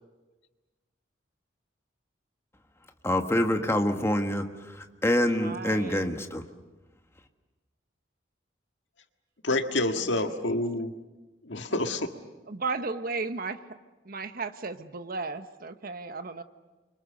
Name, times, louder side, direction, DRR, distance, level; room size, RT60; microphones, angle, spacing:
voice 1, 3.0-6.4, left 1 dB, 15° left, 5 dB, 1.6 m, -26 dB
voice 2, 5.4-6.1 10.0-10.5 12.5-13.6 14.0-16.4, right 4 dB, 50° right, 9 dB, 1.1 m, -35 dB
voice 3, 9.4-10.9 11.4-12.1, left 2 dB, 75° left, 6 dB, 1.8 m, -28 dB
29.5 x 24.5 x 6.8 m, 1.2 s
head